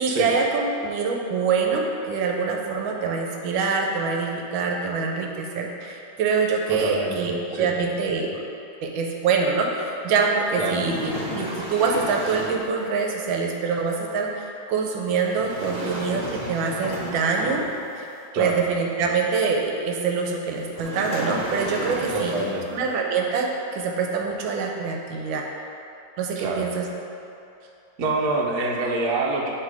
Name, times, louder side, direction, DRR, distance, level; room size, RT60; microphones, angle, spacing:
voice 1, 0.0-8.4 8.8-17.6 18.0-18.1 18.4-22.3 22.7-25.5 26.2-26.9, right 5 dB, 80° right, 1 dB, 1.4 m, -25 dB
voice 2, 6.7-7.7 10.6-10.8 18.3-18.6 22.1-22.7 26.4-26.7 28.0-29.5, right 2 dB, 60° right, -2 dB, 1.1 m, -26 dB
sound 1, 10.4-12.7 15.2-18.0 20.7-22.7, equal, 40° right, 1.2 m, -33 dB
8.0 x 3.1 x 4.7 m, 2.7 s
omnidirectional pair, 2.1 m